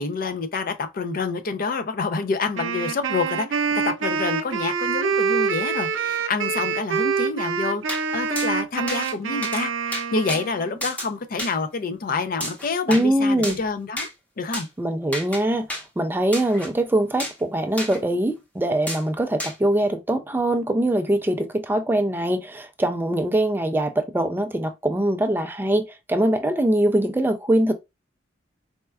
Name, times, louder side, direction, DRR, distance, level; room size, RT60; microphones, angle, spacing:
voice 1, 0.0-14.1 14.4-14.7, left 4 dB, 50° left, 0.5 m, -27 dB
Wind instrument woodwind instrument, 2.5-10.7, right 6 dB, 90° right, 0.5 m, -26 dB
sound 1, 7.9-8.0 8.4-8.5 8.9-9.1 9.4-9.6 9.9-10.4 10.8-11.1 11.4-11.5 12.4-13.1 13.4-13.6 14.0-14.1 14.5-14.7 15.1-15.4 15.7-15.8 16.3-16.7 17.2-17.4 17.8-18.0 18.9-19.0 19.4-19.6, equal, 10° left, 0.9 m, -31 dB
voice 2, 12.9-13.6 14.8-15.7 16.0-27.7, right 1 dB, 10° right, 0.3 m, -22 dB
4.2 x 2.2 x 2.2 m
head